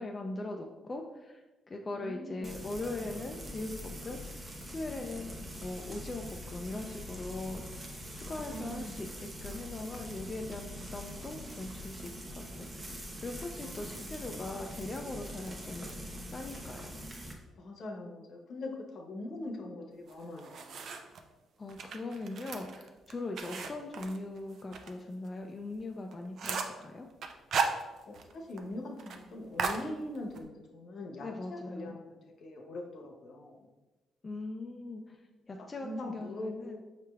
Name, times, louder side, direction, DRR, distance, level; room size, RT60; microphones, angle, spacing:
voice 1, 0.0-17.0 21.6-27.1 31.2-32.0 34.2-35.2 35.5-36.8, left 2 dB, 30° left, 2 dB, 0.3 m, -40 dB
voice 2, 2.0-2.5 8.2-9.0 13.6-14.3 15.6-15.9 17.5-20.9 23.6-23.7 28.1-33.7 35.8-36.8, left 1 dB, 65° left, 1 dB, 0.8 m, -42 dB
Frying (food), 2.4-17.3, equal, 25° right, 0.8 m, -44 dB
sound 1, 20.1-21.2 21.7-24.9 25.3-25.4 25.7-25.8 26.1-26.8 27.2-28.3 28.6-28.7 29.0-29.2 29.6-30.4, right 5 dB, 65° right, 0.4 m, -35 dB
5.6 x 3.1 x 2.3 m, 1.1 s
cardioid pair, 90°, 0 cm